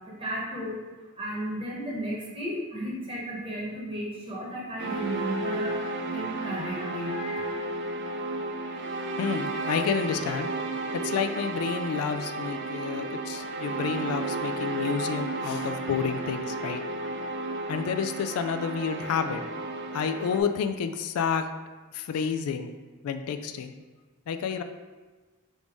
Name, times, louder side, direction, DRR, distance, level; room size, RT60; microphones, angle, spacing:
voice 1, 0.2-0.8 1.2-5.7 6.0-7.5, equal, 25° right, -5 dB, 0.9 m, -34 dB
sound 1, 4.8-20.4, right 2 dB, 55° right, 0.4 m, -33 dB
voice 2, 9.2-10.5 10.9-16.8 17.7-19.4 19.9-21.5 21.9-22.7 23.0-23.7 24.3-24.6, left 6 dB, 80° left, 8 dB, 0.3 m, -30 dB
3.5 x 2.6 x 4.6 m, 1.3 s
head